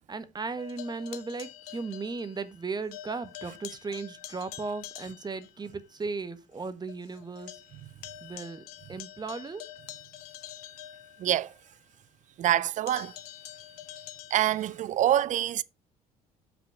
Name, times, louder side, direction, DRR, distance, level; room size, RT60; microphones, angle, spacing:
voice 1, 0.1-7.6 8.2-8.6 8.9-9.6, right 4 dB, 20° right, 1.2 m, -36 dB
sound 1, 0.6-2.6 2.9-5.5 6.0-6.1 6.5-6.6 6.9-11.7 12.9-14.8, left 13 dB, 70° left, 0.8 m, -46 dB
voice 2, 11.2-11.5 12.4-13.1 14.3-15.6, right 12 dB, 40° right, 0.5 m, -25 dB
7.6 x 5.7 x 4.9 m
figure-of-eight pair, 55°, 20 cm